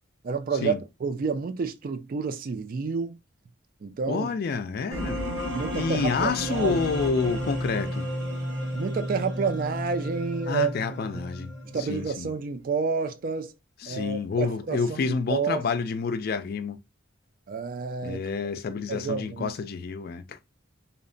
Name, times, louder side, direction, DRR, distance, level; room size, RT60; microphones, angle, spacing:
voice 1, 0.2-3.2 3.8-4.3 5.5-6.7 8.7-10.7 11.1-11.2 11.6-13.5 13.9-15.0 15.3-15.6 17.5-18.2 18.9-19.5, right 5 dB, 45° right, 0.3 m, -29 dB
voice 2, 4.1-5.2 5.7-8.1 10.5-11.5 11.8-12.3 13.8-16.8 18.0-20.4, left 5 dB, 50° left, 0.3 m, -28 dB
sound 1, 4.9-11.9, equal, 90° right, 1.2 m, -32 dB
2.8 x 2.1 x 2.5 m
head